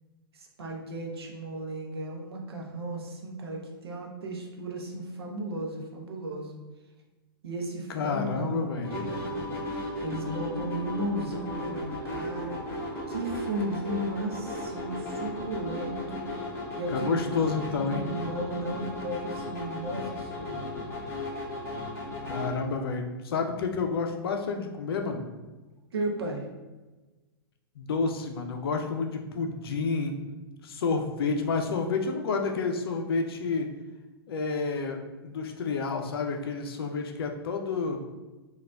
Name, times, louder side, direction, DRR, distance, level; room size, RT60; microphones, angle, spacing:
voice 1, 0.3-6.6 7.4-9.6 10.0-12.6 13.1-16.3 16.7-17.4 17.7-20.7 25.9-26.5 30.8-31.0, right 1 dB, 85° right, 0 dB, 0.7 m, -35 dB
voice 2, 7.9-8.9 16.9-18.0 22.3-25.2 27.8-30.2 30.6-33.7 34.3-38.0, left 4 dB, 75° left, 4 dB, 0.5 m, -29 dB
sound 1, 8.8-22.6, left 1 dB, 20° left, 1.0 m, -35 dB
4.0 x 2.4 x 2.2 m, 1.2 s
hypercardioid pair, 115°, 13 cm